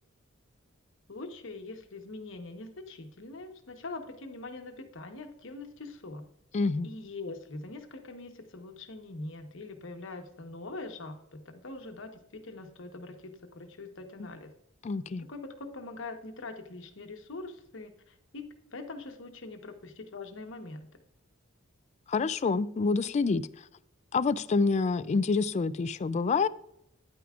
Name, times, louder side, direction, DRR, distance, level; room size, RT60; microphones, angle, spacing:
voice 1, 1.1-6.3 6.8-14.5 15.3-18.4 18.7-20.9, left 2 dB, 65° left, 1.1 m, -43 dB
voice 2, 6.5-6.9 14.2-14.3 14.8-15.3 22.1-23.5 24.1-26.5, left 4 dB, 35° left, 0.3 m, -27 dB
10.0 x 9.2 x 2.4 m
head